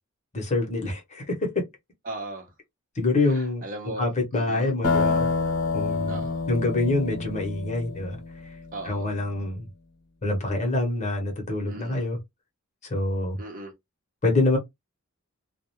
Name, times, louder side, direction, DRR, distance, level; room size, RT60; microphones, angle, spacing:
voice 1, 0.3-1.3 3.0-3.6 4.0-5.3 5.7-8.2 8.8-9.7 10.2-12.2 12.9-13.4 14.2-14.6, left 2 dB, 35° left, 0.8 m, -26 dB
voice 2, 2.1-2.5 3.2-4.1 4.3-4.7 6.1-6.4 8.7-9.1 11.7-12.1 13.4-13.7, right 2 dB, 40° right, 0.8 m, -38 dB
sound 1, 4.8-8.6, left 4 dB, 60° left, 0.9 m, -27 dB
2.3 x 2.1 x 2.9 m
head